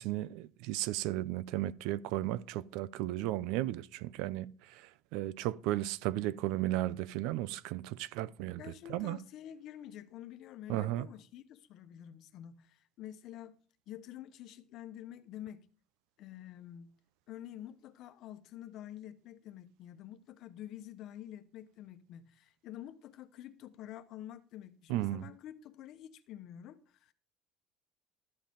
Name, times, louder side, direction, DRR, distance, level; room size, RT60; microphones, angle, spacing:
voice 1, 0.0-8.6 8.9-9.2 10.7-11.1 24.9-25.2, right 15 dB, 70° right, 0.5 m, -35 dB
voice 2, 8.6-13.6 13.9-15.7 16.2-16.9 17.3-27.1, left 11 dB, 45° left, 1.0 m, -48 dB
13.0 x 7.7 x 5.2 m
cardioid pair, 175°, 0 cm